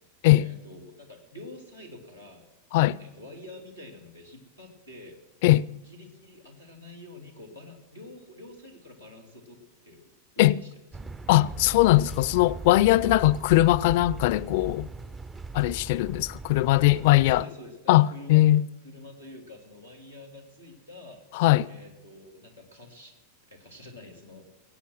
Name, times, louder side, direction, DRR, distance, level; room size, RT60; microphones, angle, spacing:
voice 1, 0.4-2.5 3.0-5.2 5.8-10.0 10.3-10.8 13.0-13.1 16.9-18.6 18.8-21.2 21.7-23.1 23.5-24.4, left 2 dB, 90° right, 2.9 m, -47 dB
sound 1, 10.9-17.4, right 3 dB, 15° right, 0.4 m, -39 dB
voice 2, 11.3-14.9 15.5-17.4 17.9-18.7 21.4-21.7, left 16 dB, 50° left, 0.4 m, -20 dB
20.5 x 8.6 x 6.2 m
figure-of-eight pair, 90°, 0 cm